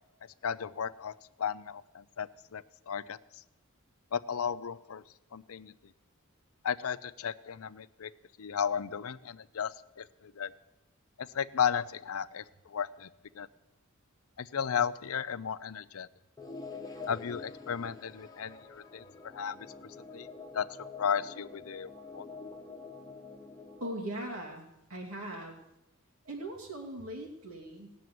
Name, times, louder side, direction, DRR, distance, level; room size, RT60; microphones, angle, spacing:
voice 1, 0.4-3.2 4.1-5.0 5.3-5.7 6.6-8.1 8.4-10.5 11.2-13.1 13.4-13.5 14.4-16.1 17.1-20.3 20.5-20.7 21.0-22.2, left 7 dB, 75° left, 14 dB, 0.6 m, -34 dB
sound 1, 16.4-23.9, left 3 dB, 20° left, 1.2 m, -47 dB
voice 2, 23.8-25.6 26.2-27.9, right 1 dB, 75° right, 0 dB, 2.6 m, -40 dB
18.0 x 7.0 x 9.3 m, 0.92 s
head